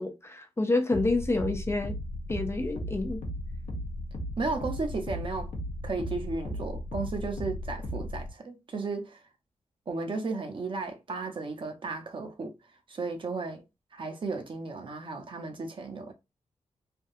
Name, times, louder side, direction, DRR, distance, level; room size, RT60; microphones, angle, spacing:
voice 1, 0.0-2.0 2.3-3.2, left 2 dB, 20° left, 0.4 m, -28 dB
sound 1, 0.9-8.3, equal, 65° left, 0.7 m, -36 dB
voice 2, 4.4-5.5 5.8-9.2 9.9-12.5 12.9-13.6 13.9-16.1, right 3 dB, 45° right, 0.7 m, -34 dB
3.4 x 2.2 x 2.6 m
wide cardioid pair, 140°, 12 cm